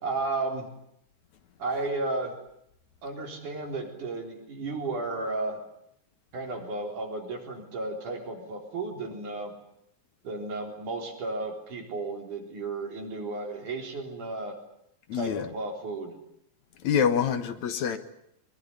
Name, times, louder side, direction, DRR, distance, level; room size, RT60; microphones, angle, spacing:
voice 1, 0.0-0.7 1.6-2.3 3.0-5.6 6.3-9.5 10.2-14.6 15.1-16.2, right 3 dB, 65° right, 2 dB, 5.4 m, -33 dB
voice 2, 15.1-15.5 16.8-18.0, left 7 dB, 65° left, 10 dB, 2.4 m, -26 dB
23.5 x 22.0 x 9.8 m, 0.78 s
omnidirectional pair, 3.8 m